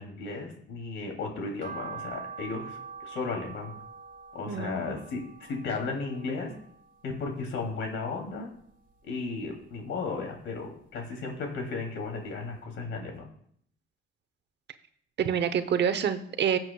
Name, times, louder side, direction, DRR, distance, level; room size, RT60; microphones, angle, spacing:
voice 1, 0.0-3.7 4.3-5.2 5.5-6.5 7.0-8.5 9.1-13.2, left 4 dB, 75° left, 2 dB, 2.9 m, -35 dB
sound 1, 1.6-7.9 8.3-9.4 9.8-11.2 11.6-11.7 12.1-12.2 12.5-12.6, right 5 dB, 45° right, 1.6 m, -45 dB
voice 2, 4.5-5.0 15.2-16.6, right 8 dB, 60° right, 10 dB, 0.9 m, -27 dB
16.5 x 7.6 x 2.3 m, 0.64 s
cardioid pair, 90°, 20 cm